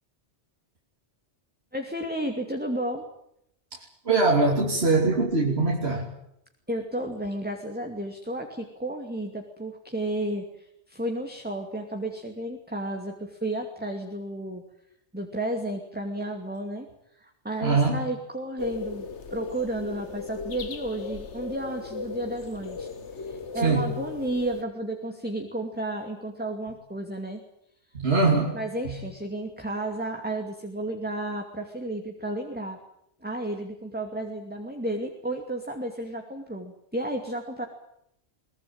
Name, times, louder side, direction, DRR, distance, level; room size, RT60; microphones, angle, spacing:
voice 1, 1.7-3.0 6.7-14.6 15.1-16.9 17.2-19.0 19.3-27.4 28.5-32.8 33.2-37.7, right 1 dB, 10° right, 3 dB, 2.6 m, -32 dB
voice 2, 3.7-6.1 17.6-18.0 23.6-23.9 27.9-28.6 28.9-29.0, right 3 dB, 60° right, -1 dB, 3.5 m, -23 dB
sound 1, 18.6-24.6, left 4 dB, 75° left, 1.8 m, -37 dB
22.5 x 21.0 x 9.0 m, 0.76 s
omnidirectional pair, 1.2 m